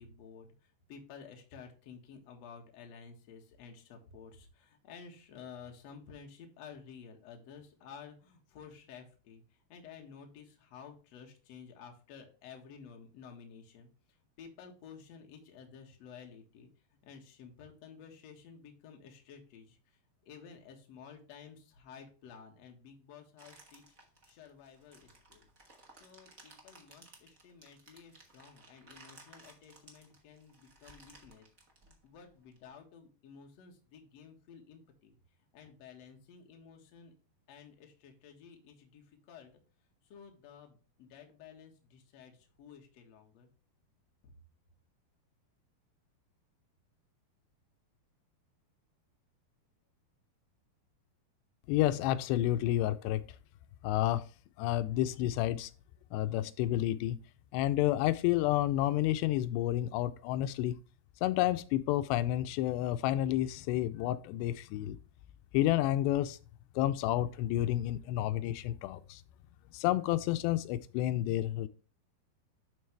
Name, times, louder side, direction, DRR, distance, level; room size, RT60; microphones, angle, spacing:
voice 1, 0.0-16.7 17.0-23.8 24.3-25.4 26.0-31.5 31.9-35.2 35.5-37.1 37.5-39.5 40.0-43.5, left 6 dB, 55° left, 2.1 m, -53 dB
sound 1, 23.4-32.6, right 2 dB, 85° right, 0.7 m, -58 dB
voice 2, 51.7-53.2 53.8-54.2 54.6-55.7 56.1-57.2 57.5-60.8 61.2-65.0 65.5-66.4 66.8-69.2 69.7-71.7, left 14 dB, 90° left, 2.7 m, -30 dB
12.0 x 4.0 x 3.3 m
omnidirectional pair, 4.8 m